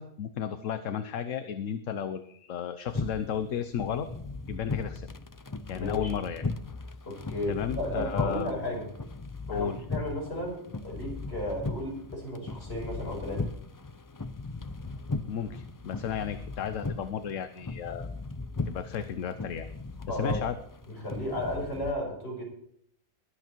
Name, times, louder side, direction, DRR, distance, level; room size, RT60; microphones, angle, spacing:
voice 1, 0.0-4.1 4.5-5.1 5.7-6.4 7.5-8.5 9.5-9.8 15.3-18.1 18.7-19.7 20.1-20.6, left 8 dB, 75° left, 10 dB, 1.2 m, -33 dB
sound 1, 2.9-21.9, left 3 dB, 30° left, 0.4 m, -37 dB
voice 2, 5.7-6.1 7.0-8.9 9.5-13.5 20.1-20.4 20.9-22.4, left 1 dB, 50° left, -1 dB, 5.9 m, -34 dB
22.0 x 8.1 x 4.5 m, 0.67 s
omnidirectional pair, 1.3 m